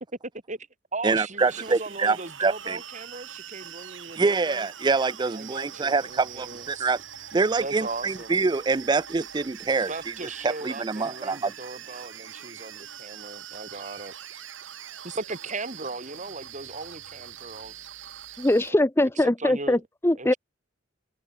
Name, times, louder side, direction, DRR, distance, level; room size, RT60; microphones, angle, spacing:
voice 1, 0.5-4.7 5.3-6.9 7.6-8.4 9.9-14.1 15.0-17.9 18.6-18.9 19.1-19.8 20.1-20.4, right 3 dB, 40° right, 4.7 m, -38 dB
voice 2, 1.0-2.8 4.2-7.0 7.3-10.1 10.4-11.5, right 4 dB, 25° right, 0.4 m, -25 dB
sound 1, 1.4-18.7, right 9 dB, 85° right, 5.1 m, -43 dB
voice 3, 18.4-20.3, left 1 dB, 15° left, 0.7 m, -22 dB
head